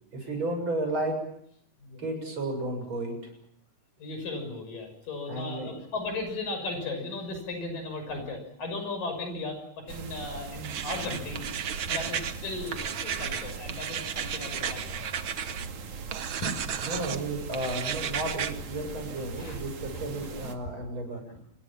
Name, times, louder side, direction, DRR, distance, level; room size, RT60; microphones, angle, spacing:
voice 1, 0.1-1.2 2.0-3.3 5.3-5.7 16.8-21.2, right 2 dB, 35° right, 4 dB, 7.7 m, -33 dB
voice 2, 4.0-11.5 11.8-15.2 16.4-16.6 19.1-19.6 19.9-20.5 21.3-21.4, left 2 dB, 70° left, 6 dB, 7.8 m, -36 dB
sound 1, 9.9-20.5, right 5 dB, 60° right, 3.4 m, -40 dB
sound 2, 10.6-12.4 12.7-15.7 16.1-17.2 17.5-18.5, right 8 dB, 80° right, 1.1 m, -34 dB
28.0 x 22.5 x 7.4 m, 0.72 s
omnidirectional pair, 4.0 m